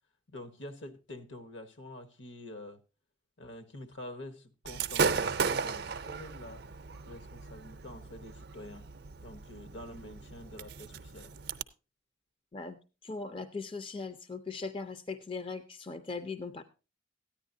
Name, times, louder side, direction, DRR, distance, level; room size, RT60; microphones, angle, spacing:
voice 1, 0.3-2.8 3.4-6.6 7.1-8.9 9.2-11.4, left 1 dB, 70° left, 1.1 m, -47 dB
Gunshot gunfire / Fireworks, 4.7-11.6, right 5 dB, 55° right, 0.5 m, -35 dB
voice 2, 12.5-16.6, left 4 dB, 25° left, 0.5 m, -39 dB
14.0 x 10.0 x 2.6 m
head